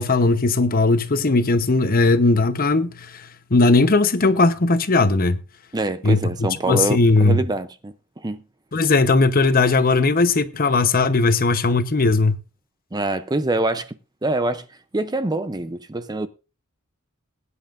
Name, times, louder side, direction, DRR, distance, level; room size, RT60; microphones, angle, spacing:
voice 1, 0.0-5.4 6.0-7.4 8.7-12.4, left 3 dB, 40° left, 0.9 m, -18 dB
voice 2, 5.7-8.4 12.9-14.0 14.2-14.7 14.9-16.3, right 2 dB, 20° right, 0.6 m, -25 dB
21.0 x 9.8 x 2.5 m
head